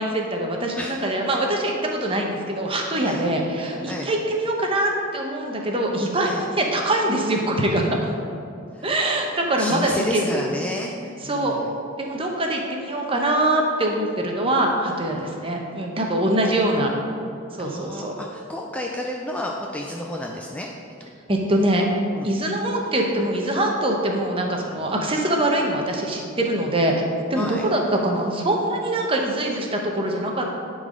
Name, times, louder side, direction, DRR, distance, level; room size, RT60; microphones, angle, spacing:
voice 1, 0.0-8.1 8.8-10.4 11.2-11.6 12.0-16.9 17.5-18.1 21.3-21.8 22.2-26.9 27.3-30.5, right 1 dB, 25° right, 1 dB, 0.9 m, -23 dB
voice 2, 8.7-9.2 9.6-11.8 15.1-15.4 17.6-20.7 21.0-21.1 22.2-22.3 27.3-27.6, left 1 dB, 5° left, -1 dB, 0.4 m, -31 dB
10.5 x 4.0 x 5.1 m, 2.7 s
head